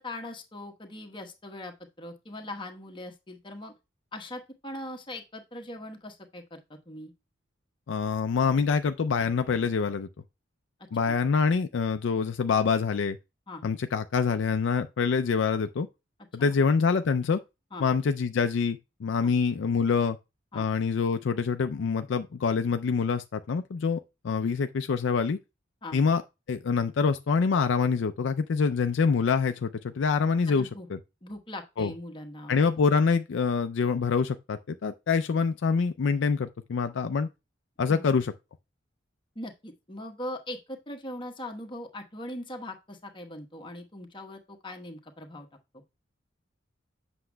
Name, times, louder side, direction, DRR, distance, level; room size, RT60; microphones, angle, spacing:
voice 1, 0.0-3.7 4.1-7.1 11.1-11.2 13.5-13.6 16.4-16.6 17.7-17.9 19.2-19.3 20.5-20.7 25.8-26.0 30.5-30.9 31.2-32.6 37.9-38.0 39.3-45.5 45.7-45.8, left 1 dB, 25° left, 1.1 m, -40 dB
voice 2, 7.9-10.1 10.9-13.2 13.6-15.9 16.3-17.4 17.8-20.2 20.5-24.0 24.2-25.4 25.9-26.2 26.5-30.7 31.8-31.9 32.5-37.3 37.8-38.3, left 5 dB, 65° left, 0.4 m, -25 dB
7.8 x 6.1 x 2.2 m
head